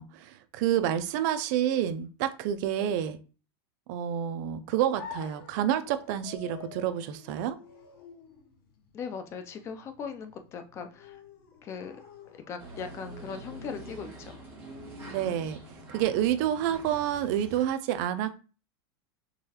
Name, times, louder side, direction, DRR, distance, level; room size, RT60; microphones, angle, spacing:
voice 1, 0.0-3.2 3.9-7.6 15.1-18.4, right 10 dB, 45° right, 10 dB, 0.4 m, -29 dB
sound 1, 5.0-12.9, left 6 dB, 70° left, 1.0 m, -49 dB
voice 2, 8.9-11.2 11.6-12.0 12.3-14.4, left 6 dB, 20° left, 8 dB, 0.3 m, -39 dB
sound 2, 12.6-17.6, right 1 dB, 15° right, 1.5 m, -45 dB
3.8 x 3.1 x 2.8 m, 0.35 s
supercardioid pair, 160°, 13 cm